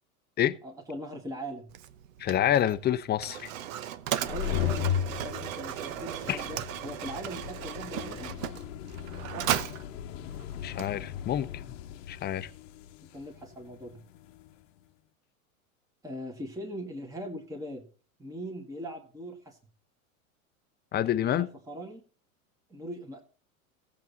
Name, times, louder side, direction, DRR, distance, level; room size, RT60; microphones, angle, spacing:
voice 1, 0.6-1.7 4.3-8.3 9.3-9.6 13.1-14.0 16.0-17.9 18.2-19.6 21.2-22.0 22.7-23.2, equal, 10° right, 1.8 m, -40 dB
Mechanisms, 1.7-11.4, right 11 dB, 65° right, 1.0 m, -36 dB
voice 2, 2.2-3.5 6.3-6.4 10.6-11.5 12.1-12.5 20.9-21.5, left 11 dB, 25° left, 0.7 m, -27 dB
sound 1, 4.1-14.6, left 10 dB, 60° left, 1.0 m, -37 dB
15.5 x 7.2 x 4.0 m
hypercardioid pair, 100°, 43 cm